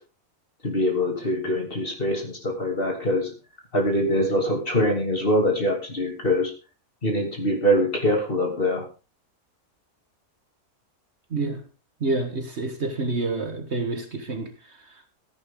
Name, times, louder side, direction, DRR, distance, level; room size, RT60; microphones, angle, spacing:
voice 1, 0.6-3.3 3.7-6.5 7.0-8.8, equal, 40° left, 3.0 m, -23 dB
voice 2, 11.3-11.6 12.0-15.0, right 3 dB, 50° right, 1.6 m, -28 dB
14.5 x 10.0 x 3.7 m
omnidirectional pair, 1.5 m